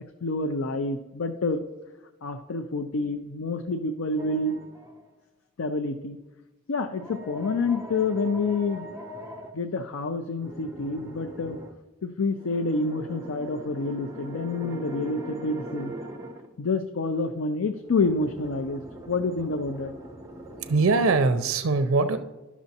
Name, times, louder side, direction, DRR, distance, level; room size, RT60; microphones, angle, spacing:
voice 1, 0.2-1.6 2.2-4.6 5.6-6.2 6.7-8.9 9.5-11.6 12.0-15.9 16.6-19.9, left 3 dB, 70° left, 8 dB, 0.5 m, -28 dB
sound 1, 4.2-5.1 6.9-9.5 10.4-11.7 12.4-16.5 17.8-21.5, right 1 dB, 15° right, 0.6 m, -41 dB
voice 2, 20.6-22.2, right 3 dB, 70° right, 10 dB, 0.4 m, -22 dB
11.5 x 6.1 x 2.7 m, 1.1 s
head